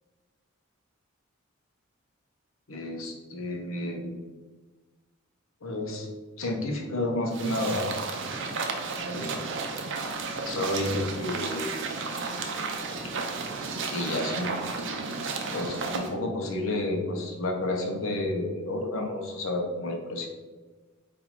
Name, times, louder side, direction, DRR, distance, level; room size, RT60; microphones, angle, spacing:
voice 1, 2.7-4.1 5.6-6.1 6.4-7.9 9.0-9.3 10.4-11.7 13.9-14.5 15.5-20.3, left 1 dB, 70° left, 2 dB, 0.8 m, -30 dB
sound 1, 7.3-16.1, right 4 dB, 60° right, 0.6 m, -33 dB
4.2 x 2.6 x 4.3 m, 1.3 s
head